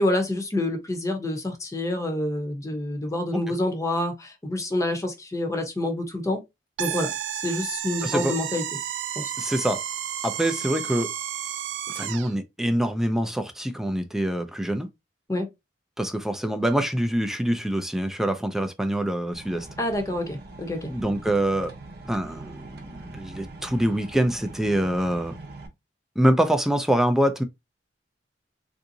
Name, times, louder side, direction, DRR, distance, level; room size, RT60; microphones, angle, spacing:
voice 1, 0.0-6.4 6.8-8.6 9.2-9.3 15.3-15.5 19.8-20.9, left 1 dB, 20° left, 0.8 m, -27 dB
sound 1, 6.8-12.3, right 10 dB, 85° right, 0.4 m, -32 dB
voice 2, 8.0-8.3 9.4-9.8 10.2-11.1 12.0-14.9 16.0-19.7 20.9-21.7 22.1-25.3 26.2-27.4, right 1 dB, ahead, 0.4 m, -25 dB
sound 2, 19.3-25.7, right 2 dB, 60° right, 0.7 m, -42 dB
3.6 x 2.6 x 2.7 m
head